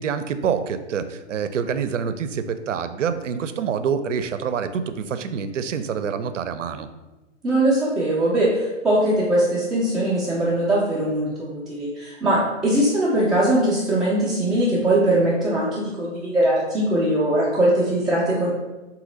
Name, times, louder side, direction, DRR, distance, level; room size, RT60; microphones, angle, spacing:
voice 1, 0.0-6.9, right 7 dB, 75° right, 10 dB, 0.5 m, -26 dB
voice 2, 7.4-18.5, right 1 dB, ahead, -11 dB, 0.3 m, -21 dB
3.9 x 2.9 x 3.8 m, 1.1 s
figure-of-eight pair, 120°, 37 cm